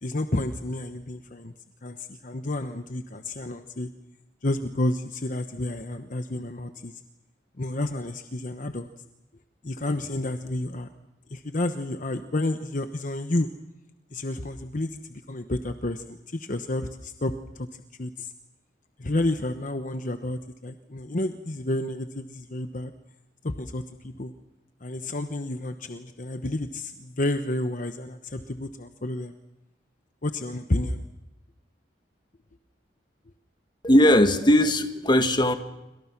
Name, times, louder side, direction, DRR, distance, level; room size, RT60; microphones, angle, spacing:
voice 1, 0.0-1.5 1.8-3.9 4.4-7.0 7.6-8.9 9.6-10.9 11.3-13.5 14.1-17.7 18.0-18.3 19.0-22.9 23.4-24.3 24.8-29.3 30.2-31.1, left 1 dB, 45° left, 8 dB, 1.1 m, -30 dB
voice 2, 33.8-35.6, left 1 dB, 25° left, 8 dB, 1.7 m, -19 dB
28.0 x 25.5 x 6.0 m, 0.96 s
head